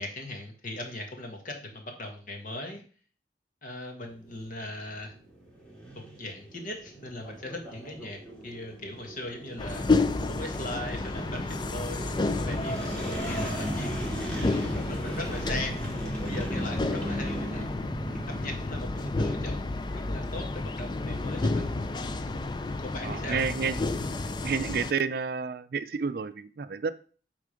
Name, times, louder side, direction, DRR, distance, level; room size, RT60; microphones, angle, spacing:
voice 1, 0.0-2.8 3.6-5.1 6.2-9.9 10.2-17.7 18.3-21.7 22.8-23.4, left 1 dB, 50° left, 3 dB, 1.6 m, -39 dB
sound 1, 4.0-19.2, right 1 dB, 5° left, 2.1 m, -38 dB
sound 2, 9.6-24.9, left 2 dB, 25° left, 0.4 m, -31 dB
voice 2, 23.0-23.8 24.4-26.9, right 5 dB, 55° right, 13 dB, 0.4 m, -30 dB
8.4 x 3.8 x 5.1 m, 0.41 s
head